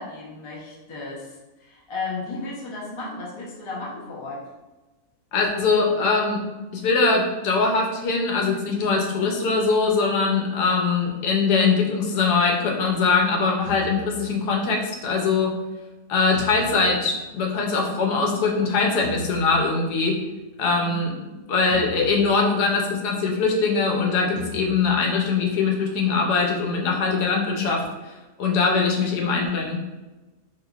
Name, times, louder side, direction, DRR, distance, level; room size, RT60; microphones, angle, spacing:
voice 1, 0.0-4.4 20.8-20.9, left 3 dB, 35° left, -5 dB, 0.4 m, -34 dB
voice 2, 5.3-6.4 6.7-15.5 16.1-20.2 20.6-21.1 21.5-29.8, left 4 dB, 85° left, 0 dB, 1.2 m, -22 dB
sound 1, 13.7-14.8 16.3-17.9 19.0-20.2 21.7-22.9 24.4-25.5, left 1 dB, 10° left, 1.3 m, -40 dB
3.7 x 2.7 x 2.3 m, 1.1 s
omnidirectional pair, 1.7 m